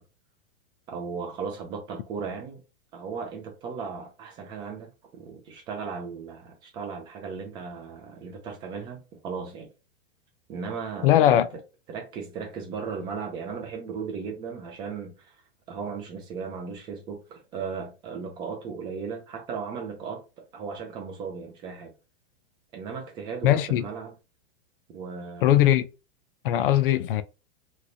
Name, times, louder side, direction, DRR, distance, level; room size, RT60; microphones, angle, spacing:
voice 1, 0.9-2.6 2.9-9.7 10.5-11.5 11.9-15.3 15.7-21.9 22.7-24.2 24.9-25.6, right 5 dB, 15° right, 0.4 m, -36 dB
voice 2, 11.0-11.5 23.4-23.8 25.4-25.9 26.4-27.2, left 12 dB, 65° left, 0.4 m, -20 dB
3.1 x 3.0 x 2.6 m
supercardioid pair, 160°, 30 cm